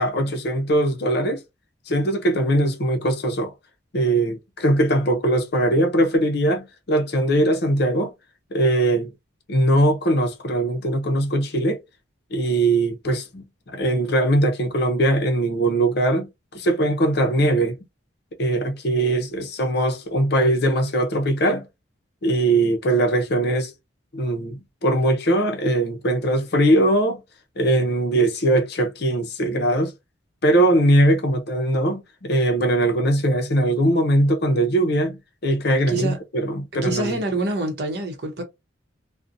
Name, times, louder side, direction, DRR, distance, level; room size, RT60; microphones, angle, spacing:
voice 1, 0.0-1.4 1.9-3.5 3.9-8.1 8.5-9.1 9.5-11.8 12.3-16.3 16.5-17.8 18.4-21.6 22.2-23.7 24.1-27.2 27.6-29.9 30.4-37.2, right 1 dB, 55° left, 0.6 m, -21 dB
voice 2, 35.9-36.2 36.8-38.4, right 2 dB, 55° right, 0.8 m, -26 dB
2.6 x 2.1 x 2.5 m
head